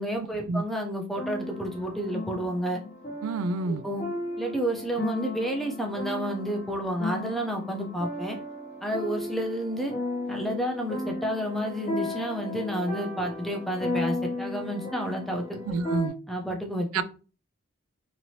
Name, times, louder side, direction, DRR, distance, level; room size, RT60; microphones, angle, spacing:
voice 1, 0.0-2.8 3.7-4.0 4.4-8.4 8.8-9.9 10.3-15.6 16.3-17.0, equal, ahead, 0.5 m, -30 dB
sound 1, 1.1-16.1, left 2 dB, 35° left, 0.8 m, -35 dB
voice 2, 3.2-3.8 15.7-16.1 16.9-17.0, right 3 dB, 80° right, 0.3 m, -28 dB
3.0 x 2.6 x 2.8 m
head